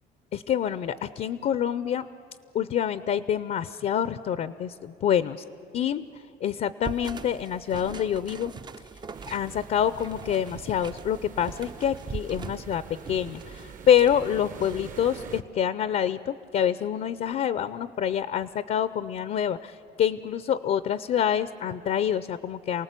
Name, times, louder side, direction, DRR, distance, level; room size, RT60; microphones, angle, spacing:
voice 1, 0.3-2.1 2.5-5.4 5.7-6.0 6.4-8.5 9.3-22.8, left 9 dB, 55° left, 14 dB, 0.6 m, -26 dB
sound 1, 6.8-15.1, right 5 dB, 25° right, 0.6 m, -42 dB
sound 2, 9.1-15.4, right 7 dB, 50° right, 1.1 m, -44 dB
28.5 x 18.5 x 8.3 m, 2.7 s
cardioid pair, 110°, 17 cm